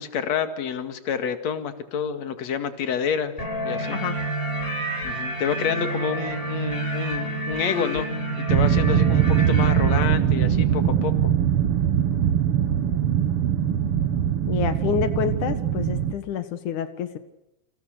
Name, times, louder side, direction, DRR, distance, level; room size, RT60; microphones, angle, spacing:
voice 1, 0.0-3.3 3.6-4.0 5.0-8.1 8.4-11.3, left 7 dB, 65° left, 8 dB, 3.3 m, -28 dB
sound 1, 3.4-10.1, right 1 dB, 15° left, 6.5 m, -29 dB
sound 2, 8.5-16.1, right 9 dB, 55° right, 2.0 m, -21 dB
voice 2, 14.5-17.2, left 9 dB, 90° left, 10 dB, 3.0 m, -28 dB
29.5 x 28.0 x 6.8 m, 0.89 s
omnidirectional pair, 3.4 m